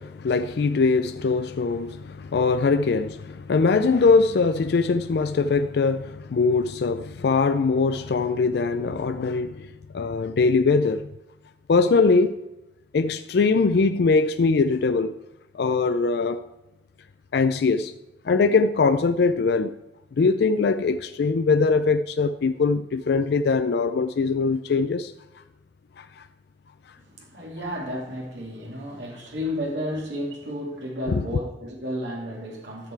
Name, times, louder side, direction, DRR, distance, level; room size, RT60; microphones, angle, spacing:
voice 1, 0.0-9.7 9.9-11.1 11.7-12.4 12.9-15.2 15.5-16.4 17.3-17.9 18.2-19.7 20.2-25.1 26.0-26.3 31.1-31.2, left 4 dB, 65° left, 0.4 m, -22 dB
voice 2, 27.0-32.9, equal, 85° right, 2.6 m, -32 dB
12.5 x 6.7 x 4.6 m
head